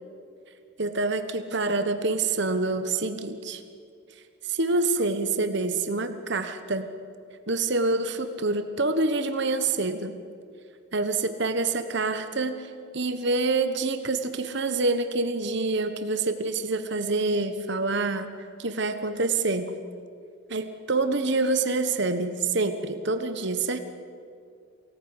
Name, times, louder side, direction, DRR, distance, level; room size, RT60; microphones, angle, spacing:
voice 1, 0.8-3.6 4.4-6.9 7.5-10.2 10.9-18.3 18.6-19.7 20.5-23.8, right 3 dB, 55° right, 8 dB, 1.3 m, -26 dB
24.0 x 18.0 x 9.8 m, 2.4 s
head